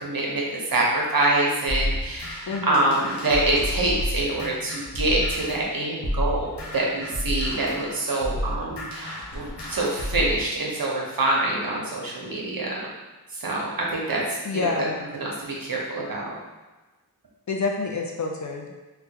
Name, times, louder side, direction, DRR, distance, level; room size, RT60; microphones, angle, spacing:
voice 1, 0.0-0.4 0.7-12.9 13.3-14.2 14.5-14.7 15.1-16.3, right 2 dB, 60° right, -3 dB, 0.9 m, -25 dB
sound 1, 1.7-5.6 6.0-10.4, left 1 dB, 80° left, 0.9 m, -30 dB
voice 2, 2.5-3.0 14.4-15.0 17.5-18.7, left 3 dB, 45° left, 1 dB, 0.5 m, -28 dB
3.7 x 2.2 x 2.8 m, 1.2 s
wide cardioid pair, 65°, 40 cm